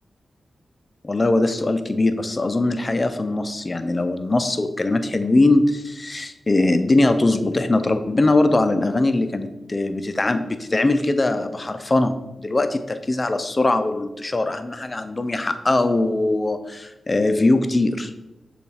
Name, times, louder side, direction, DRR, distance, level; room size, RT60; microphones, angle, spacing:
voice 1, 1.0-18.1, left 2 dB, 35° left, 9 dB, 0.4 m, -21 dB
6.7 x 2.4 x 3.3 m, 0.99 s
cardioid pair, 45°, 0 cm